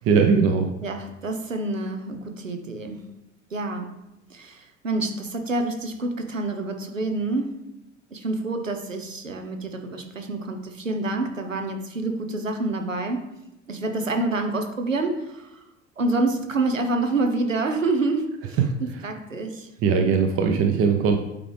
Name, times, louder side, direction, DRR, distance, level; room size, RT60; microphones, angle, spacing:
voice 1, 0.0-0.7 19.8-21.2, right 5 dB, 35° right, 4 dB, 0.8 m, -19 dB
voice 2, 0.8-3.1 3.5-3.9 4.3-7.6 8.1-13.3 13.7-15.6 16.0-19.7, right 2 dB, 85° right, 5 dB, 0.9 m, -27 dB
8.5 x 4.8 x 3.4 m, 0.89 s
figure-of-eight pair, 70°, 38 cm